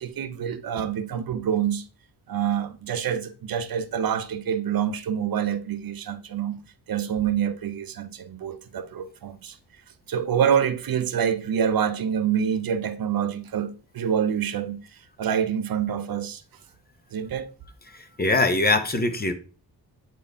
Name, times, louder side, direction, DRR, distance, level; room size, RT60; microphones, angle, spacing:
voice 1, 0.0-1.9 2.3-6.6 6.9-9.6 10.1-16.4 17.1-17.5, right 8 dB, 60° right, 0.7 m, -26 dB
voice 2, 17.9-19.3, left 2 dB, 25° left, 0.9 m, -22 dB
8.3 x 4.3 x 3.5 m
wide cardioid pair, 125°, 39 cm